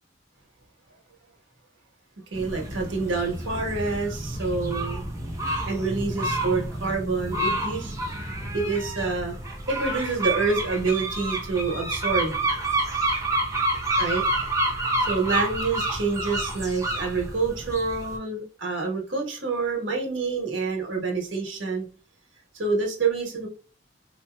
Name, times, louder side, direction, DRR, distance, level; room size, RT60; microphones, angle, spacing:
sound 1, 2.3-18.2, right 1 dB, 15° right, 0.6 m, -29 dB
voice 1, 2.3-5.1 5.6-7.9 8.5-9.3 9.7-12.4 14.0-14.2 14.6-14.7 15.0-21.8 22.5-23.5, right 4 dB, 90° right, 0 dB, 1.2 m, -27 dB
3.9 x 2.8 x 2.2 m, 0.35 s
head